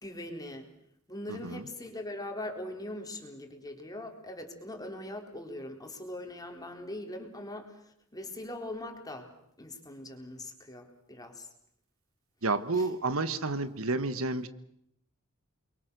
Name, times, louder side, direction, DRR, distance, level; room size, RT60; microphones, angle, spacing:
voice 1, 0.0-0.7 1.1-9.3 9.6-11.5 12.7-12.9, left 1 dB, 20° left, 4 dB, 3.9 m, -41 dB
voice 2, 1.3-1.6 12.4-14.5, right 3 dB, 85° right, 12 dB, 1.5 m, -30 dB
29.0 x 23.0 x 6.8 m, 0.72 s
head